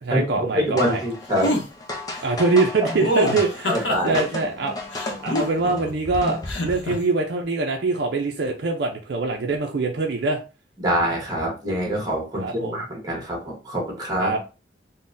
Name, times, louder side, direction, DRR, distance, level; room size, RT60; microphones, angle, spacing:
voice 1, 0.0-1.0 2.2-4.7 5.2-10.4 12.4-12.8 14.2-14.4, right 3 dB, 60° right, 1 dB, 0.4 m, -24 dB
voice 2, 0.5-1.6 3.2-3.3 3.7-4.2 10.8-14.3, equal, 20° right, -1 dB, 1.1 m, -25 dB
sound 1, 0.8-6.9, left 2 dB, 20° left, 0.5 m, -33 dB
sound 2, 1.4-1.6 3.0-4.2 4.9-5.9 6.5-7.0, left 1 dB, 80° left, 0.7 m, -25 dB
3.8 x 2.1 x 2.5 m, 0.31 s
head